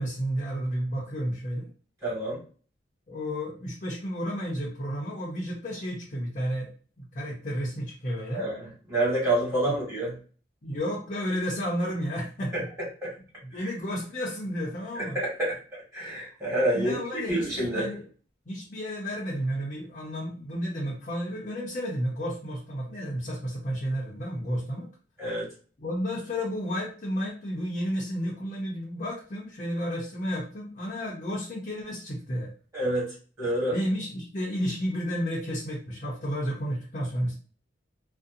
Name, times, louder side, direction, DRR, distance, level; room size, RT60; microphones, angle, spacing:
voice 1, 0.0-1.7 3.1-6.7 7.0-8.5 9.6-9.8 10.6-12.7 13.4-15.2 16.7-17.5 17.7-18.0 18.5-24.9 25.8-32.5 33.7-37.3, equal, 40° left, -6 dB, 0.7 m, -32 dB
voice 2, 2.0-2.4 8.3-10.1 12.5-12.6 13.0-13.1 13.5-13.7 14.9-17.9 25.2-25.5 32.7-33.1 33.4-33.7, right 1 dB, 15° right, -7 dB, 1.5 m, -28 dB
2.6 x 2.2 x 2.5 m, 0.40 s
head